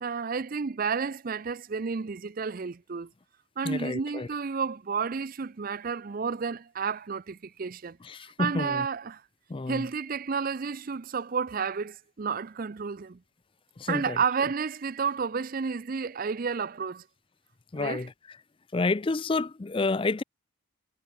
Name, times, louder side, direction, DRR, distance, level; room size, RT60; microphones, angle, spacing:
voice 1, 0.0-3.1 3.6-8.0 8.4-9.2 9.7-13.2 13.9-17.0 17.8-18.0, right 5 dB, 40° right, 0.5 m, -31 dB
voice 2, 3.6-4.3 8.0-8.9 9.5-9.9 13.8-14.2 17.7-18.4 18.7-20.2, left 3 dB, 25° left, 0.4 m, -29 dB
head